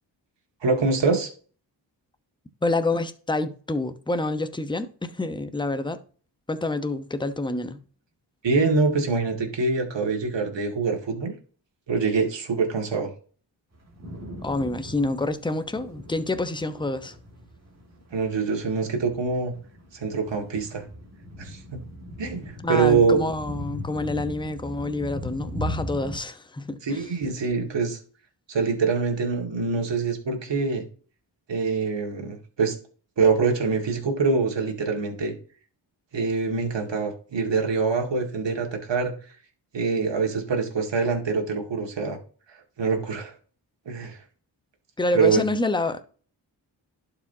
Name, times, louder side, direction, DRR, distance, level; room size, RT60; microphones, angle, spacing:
voice 1, 0.6-1.3 8.4-11.3 11.9-13.1 18.1-19.5 19.9-20.8 21.4-21.8 22.2-23.2 26.8-28.0 28.5-30.8 31.5-32.8 33.2-35.3 36.1-39.1 39.7-42.2 42.5-43.3 43.9-44.2 45.1-45.4, right 4 dB, 70° right, 2.0 m, -24 dB
voice 2, 2.6-6.0 6.5-7.8 14.4-17.2 22.6-27.0 45.0-46.0, left 2 dB, 10° left, 0.9 m, -27 dB
sound 1, 13.7-26.2, equal, 35° right, 2.5 m, -38 dB
11.5 x 5.0 x 2.8 m
cardioid pair, 55°, 46 cm